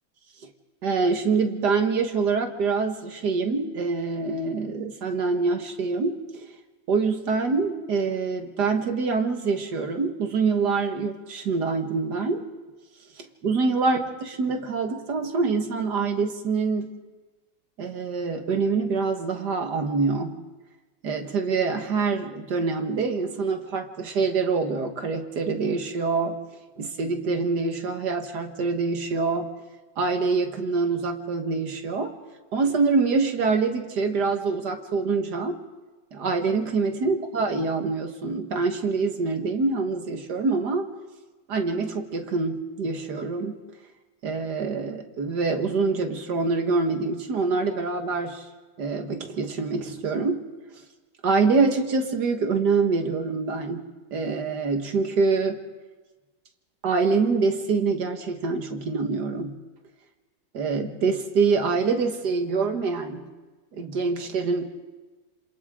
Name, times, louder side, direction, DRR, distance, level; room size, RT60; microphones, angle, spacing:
voice 1, 0.8-6.2 6.9-12.5 13.4-14.0 14.3-16.9 17.8-20.3 21.0-26.4 26.8-29.5 30.0-32.1 32.5-35.6 36.1-40.9 41.5-43.6 44.2-48.5 48.8-50.4 51.2-53.8 54.1-55.6 56.8-59.6 60.5-63.2 63.7-64.6, right 4 dB, 60° right, 5 dB, 2.1 m, -25 dB
27.5 x 26.5 x 3.7 m, 1.2 s
omnidirectional pair, 2.0 m